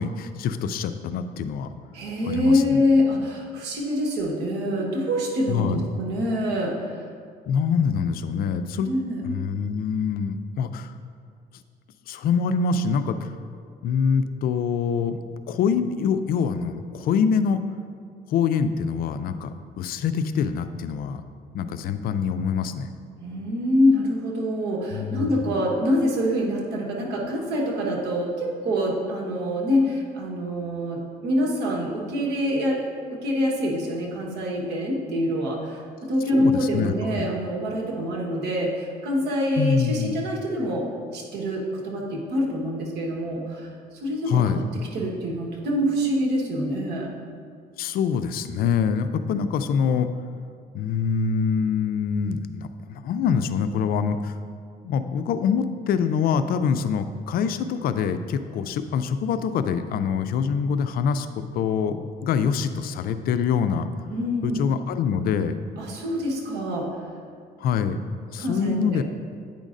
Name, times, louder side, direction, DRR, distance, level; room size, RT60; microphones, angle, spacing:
voice 1, 0.0-1.7 2.2-2.8 5.5-5.9 7.5-8.9 9.2-10.9 12.1-13.3 13.8-17.6 18.3-21.2 21.5-22.9 24.9-25.6 36.3-37.3 39.6-40.1 44.3-44.7 47.8-50.1 50.7-54.4 54.8-63.9 64.4-65.6 67.6-68.0 68.3-69.0, left 6 dB, 60° left, 10 dB, 0.4 m, -25 dB
voice 2, 1.9-7.1 8.8-9.2 23.2-40.9 41.1-43.7 44.0-44.6 44.9-47.1 64.1-64.6 65.8-66.9 68.4-68.8, left 1 dB, 75° right, -2 dB, 1.2 m, -25 dB
8.9 x 5.1 x 2.5 m, 2.2 s
cardioid pair, 110°, 17 cm